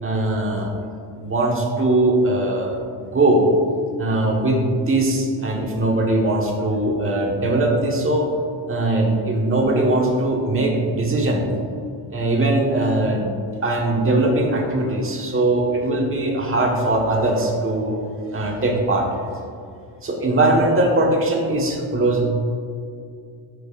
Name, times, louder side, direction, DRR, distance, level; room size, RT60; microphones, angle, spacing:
voice 1, 0.0-0.7 1.1-3.5 4.0-8.3 8.7-11.5 12.1-13.3 13.6-17.9 18.3-19.1 20.0-22.3, right 2 dB, 30° right, 0 dB, 1.3 m, -20 dB
12.5 x 4.6 x 2.4 m, 2.4 s
cardioid pair, 105°, 46 cm